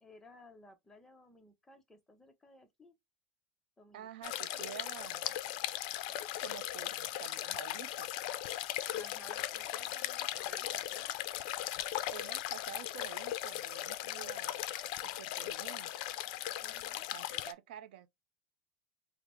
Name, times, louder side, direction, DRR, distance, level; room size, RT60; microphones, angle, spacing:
voice 1, 0.0-2.9 3.8-4.8 8.9-11.1 16.6-17.1, left 2 dB, 10° left, 0.7 m, -58 dB
voice 2, 3.9-5.4 6.4-8.1 12.1-14.6 15.0-15.9 17.1-18.1, right 11 dB, 85° right, 0.5 m, -49 dB
sound 1, 4.2-17.5, left 13 dB, 60° left, 0.4 m, -38 dB
4.9 x 2.0 x 3.0 m
supercardioid pair, 155°, 5 cm